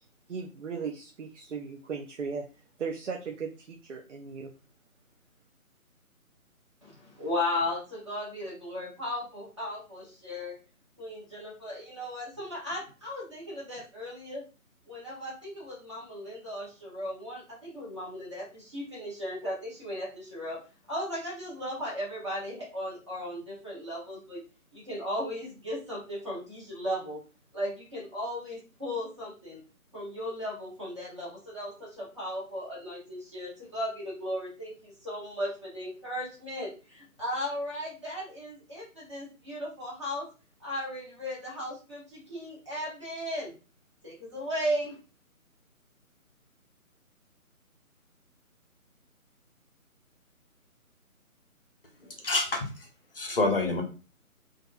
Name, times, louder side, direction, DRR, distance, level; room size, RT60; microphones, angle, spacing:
voice 1, 0.3-2.5 2.8-4.5, right 5 dB, 55° right, 2 dB, 0.5 m, -37 dB
voice 2, 6.8-10.6 11.0-14.4 14.9-20.6 20.9-24.4 24.7-27.2 27.5-29.6 29.9-40.3 40.6-43.5 44.0-45.0, left 1 dB, 20° right, -6 dB, 0.7 m, -36 dB
voice 3, 52.2-52.7 53.1-53.8, left 3 dB, 40° left, 2 dB, 0.6 m, -26 dB
2.5 x 2.4 x 2.3 m, 0.34 s
figure-of-eight pair, 155°, 43 cm